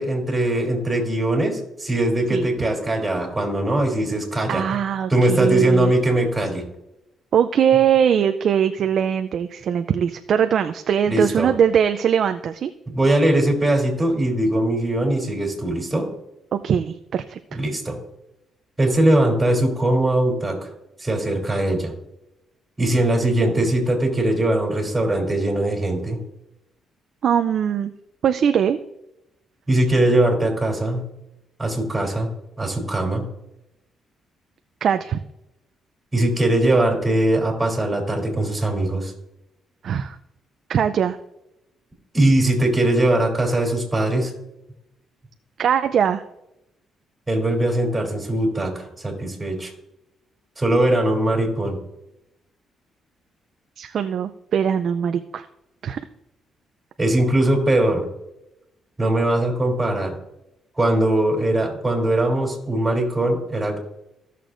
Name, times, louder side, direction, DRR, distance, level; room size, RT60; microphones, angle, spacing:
voice 1, 0.0-4.6 5.1-6.7 11.1-11.5 12.9-16.1 17.5-18.0 18.8-20.6 21.0-21.9 22.8-26.2 29.7-31.1 31.6-33.3 36.1-39.1 42.1-44.3 47.3-49.7 50.6-51.8 57.0-58.0 59.0-60.1 60.8-63.8, right 1 dB, 15° right, 1 dB, 3.2 m, -21 dB
voice 2, 4.5-5.9 7.3-12.7 16.5-17.4 27.2-27.9 28.2-28.8 34.8-35.2 39.8-40.2 40.7-41.2 45.6-46.2 53.8-55.5 55.8-56.0, right 8 dB, 60° right, 8 dB, 0.4 m, -21 dB
15.5 x 6.6 x 2.5 m, 0.88 s
cardioid pair, 90°, 0 cm